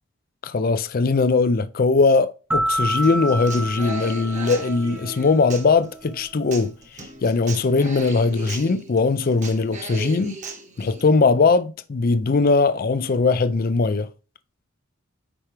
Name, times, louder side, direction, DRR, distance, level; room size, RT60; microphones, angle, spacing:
voice 1, 0.4-10.4 10.8-14.1, left 4 dB, 40° left, 0.4 m, -20 dB
sound 1, 2.5-5.3, right 1 dB, 10° right, 0.5 m, -27 dB
Human voice / Acoustic guitar, 3.0-11.0, right 3 dB, 35° right, 1.1 m, -37 dB
10.0 x 4.6 x 3.2 m
head